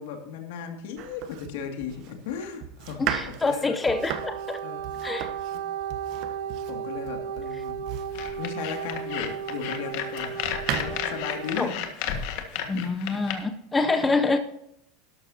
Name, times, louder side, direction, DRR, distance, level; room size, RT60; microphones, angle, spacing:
voice 1, 0.0-3.8 4.6-4.9 5.5-5.6 6.2-6.3 6.7-7.8 8.4-10.4 10.8-11.7 12.5-12.9 13.9-14.2, left 7 dB, 75° left, 4 dB, 2.3 m, -36 dB
Domestic sounds home sounds, 1.0-9.1 9.7-10.8, right 10 dB, 45° right, 0.9 m, -36 dB
voice 2, 3.0-4.6 5.0-5.3 11.6-11.7 12.7-14.4, left 3 dB, 10° left, 7 dB, 0.6 m, -26 dB
Wind instrument woodwind instrument, 3.7-11.8, right 8 dB, 75° right, 1.7 m, -35 dB
sound 1, 8.1-13.3, left 9 dB, 55° left, 1.6 m, -32 dB
12.5 x 12.0 x 2.8 m, 0.78 s
supercardioid pair, 160°, 0 cm